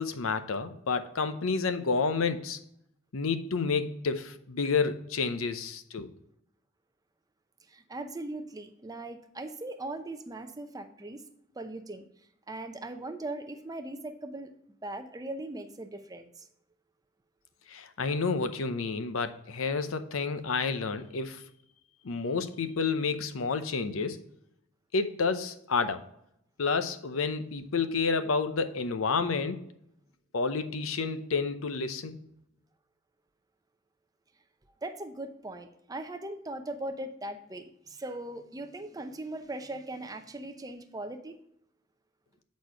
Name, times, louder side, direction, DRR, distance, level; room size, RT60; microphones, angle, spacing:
voice 1, 0.0-2.6 3.1-6.1 17.7-21.4 22.0-24.2 24.9-26.0 26.6-29.6 30.3-32.2, left 4 dB, 85° left, 0.7 m, -30 dB
voice 2, 7.7-11.2 11.6-12.0 12.5-14.5 14.8-16.5 34.8-41.4, right 2 dB, 20° right, 0.6 m, -39 dB
8.4 x 4.2 x 4.7 m
head